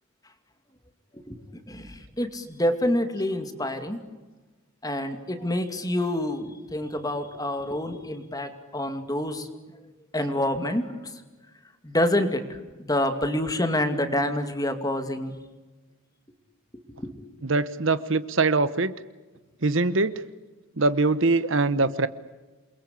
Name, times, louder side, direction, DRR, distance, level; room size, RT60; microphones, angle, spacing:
voice 1, 1.7-4.0 4.8-9.5 10.1-11.2 11.8-15.4 16.7-17.1, left 1 dB, 15° left, 8 dB, 2.5 m, -27 dB
voice 2, 17.4-18.9 19.6-20.1 20.8-22.1, right 3 dB, 60° right, 14 dB, 1.1 m, -23 dB
28.5 x 22.5 x 8.5 m, 1.2 s
head